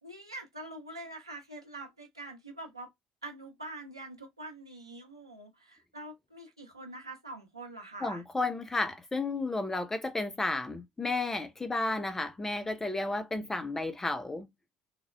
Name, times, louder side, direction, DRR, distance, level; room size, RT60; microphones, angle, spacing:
voice 1, 0.0-2.9 3.2-8.2, right 2 dB, 85° right, 0.7 m, -45 dB
voice 2, 8.0-14.5, left 2 dB, 15° left, 0.4 m, -32 dB
3.3 x 2.1 x 2.2 m
figure-of-eight pair, 55°, 3 cm